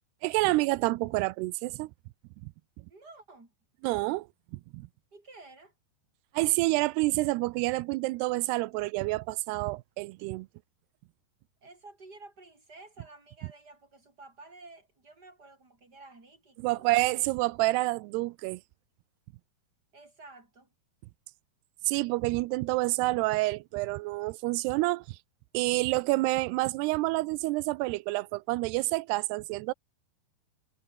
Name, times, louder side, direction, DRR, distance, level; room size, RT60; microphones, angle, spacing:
voice 1, 0.2-1.9 3.8-4.3 4.5-4.9 6.3-10.5 16.6-18.6 21.9-25.2 25.5-29.7, right 21 dB, 90° right, 2.7 m, -28 dB
voice 2, 2.9-3.5 5.1-5.7 11.6-16.9 19.9-20.7, right 3 dB, 25° right, 6.8 m, -52 dB
omnidirectional pair, 4.7 m